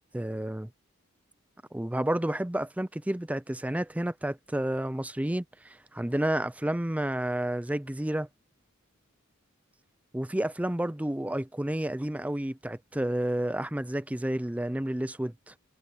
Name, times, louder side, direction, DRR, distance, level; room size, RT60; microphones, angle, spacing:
voice 1, 0.1-0.7 1.7-8.3 10.1-15.5, right 1 dB, 5° right, 0.4 m, -30 dB
head